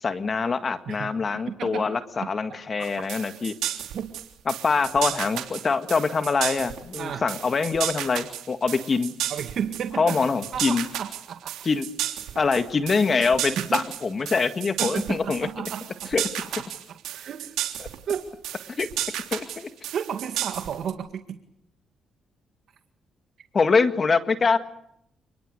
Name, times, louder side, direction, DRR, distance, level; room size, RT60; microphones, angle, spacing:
voice 1, 0.0-3.6 4.5-9.1 10.0-10.8 11.6-11.8 12.3-15.5 16.1-16.2 17.8-17.9 18.8-18.9 19.3-19.7 23.5-24.6, left 4 dB, 40° left, 10 dB, 1.8 m, -24 dB
voice 2, 0.9-2.3 3.9-4.1 7.0-7.3 9.3-10.3 10.5-11.6 13.6-13.8 14.8-16.1 16.4-17.6 18.1-18.3 19.9-21.4, right 8 dB, 65° right, 7 dB, 2.0 m, -33 dB
sound 1, 2.8-20.9, right 12 dB, 85° right, 3.3 m, -33 dB
29.5 x 21.0 x 6.7 m, 0.76 s
cardioid pair, 90°, 0 cm